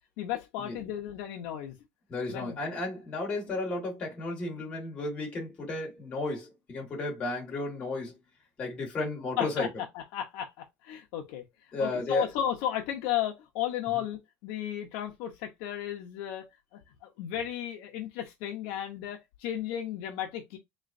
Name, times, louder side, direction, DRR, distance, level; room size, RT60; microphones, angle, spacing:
voice 1, 0.2-1.7 2.3-2.6 9.4-9.7 9.9-11.4 11.8-16.5 16.7-20.6, left 11 dB, 55° left, 0.8 m, -34 dB
voice 2, 2.1-8.2 8.6-9.7 11.7-12.3 13.9-14.0, left 2 dB, 20° left, 1.6 m, -33 dB
3.9 x 3.1 x 2.6 m
cardioid pair, 180°, 6 cm